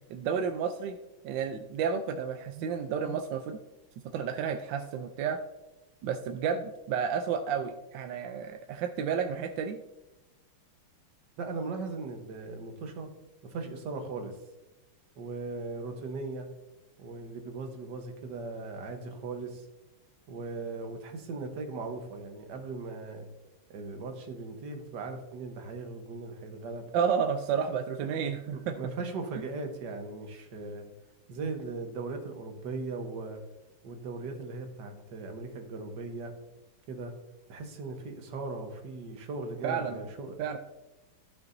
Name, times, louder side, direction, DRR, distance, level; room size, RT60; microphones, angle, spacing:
voice 1, 0.1-1.0 1.2-3.6 4.1-5.4 6.0-9.8 26.9-28.8 29.3-29.4 39.6-40.0 40.4-40.6, right 7 dB, 75° right, 6 dB, 1.1 m, -31 dB
voice 2, 11.4-13.1 13.4-14.4 15.2-16.5 17.0-19.6 20.3-23.3 23.7-26.9 28.0-28.1 28.5-30.9 31.3-33.4 33.8-36.3 36.9-37.1 37.5-40.4, right 3 dB, 55° right, 4 dB, 1.6 m, -38 dB
14.0 x 5.9 x 2.6 m, 1.0 s
omnidirectional pair, 2.4 m